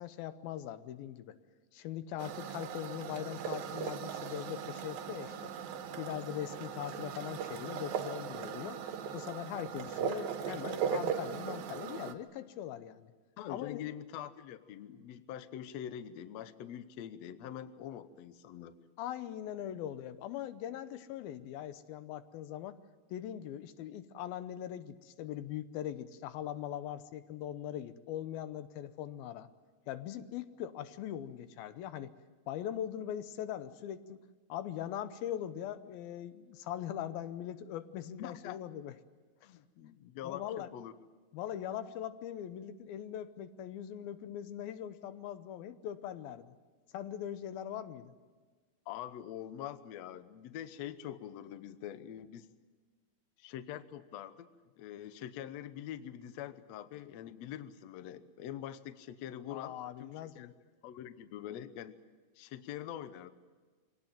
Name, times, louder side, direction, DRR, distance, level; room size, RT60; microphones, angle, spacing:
voice 1, 0.0-1.4 1.7-5.5 6.0-8.8 9.1-13.1 13.5-13.8 19.0-22.8 23.1-29.5 29.9-32.1 32.5-34.2 34.5-38.9 39.4-39.5 40.2-40.7 41.3-46.6 46.9-48.2 59.5-60.5, left 11 dB, 90° left, 12 dB, 2.8 m, -41 dB
sound 1, 2.2-12.1, right 7 dB, 85° right, 3.1 m, -38 dB
voice 2, 13.4-18.7 38.2-38.6 39.4-40.9 48.9-52.5 53.4-54.5 54.8-60.5 60.8-62.0 62.4-63.3, left 10 dB, 70° left, 12 dB, 1.7 m, -44 dB
24.5 x 18.0 x 9.1 m, 1.4 s
omnidirectional pair, 4.1 m